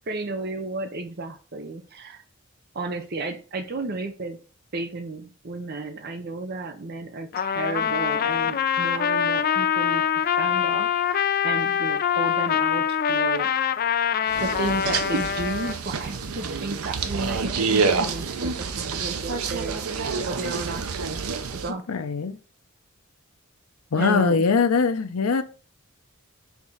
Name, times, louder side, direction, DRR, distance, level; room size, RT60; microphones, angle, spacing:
voice 1, 0.1-2.2 2.7-4.4 4.7-13.5 14.4-19.9 20.3-21.2 21.5-21.8 23.9-24.4, right 2 dB, 45° right, 0.7 m, -33 dB
Trumpet, 7.3-15.8, left 8 dB, 40° left, 0.3 m, -24 dB
sound 1, 14.3-21.7, right 4 dB, 85° right, 0.7 m, -28 dB
voice 2, 21.9-22.4 23.9-25.4, left 5 dB, 85° left, 0.6 m, -21 dB
4.8 x 3.6 x 5.4 m
head